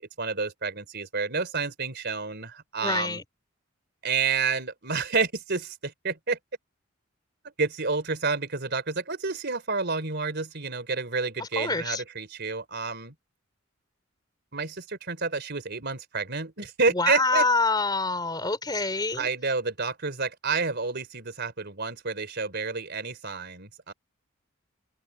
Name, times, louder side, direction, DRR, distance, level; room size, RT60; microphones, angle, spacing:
voice 1, 0.2-3.2 4.0-6.4 7.6-13.1 14.5-17.5 19.1-23.9, right 4 dB, 50° right, 3.8 m, -29 dB
voice 2, 2.8-3.2 11.4-12.0 16.9-19.3, left 3 dB, 20° left, 3.2 m, -26 dB
open air
head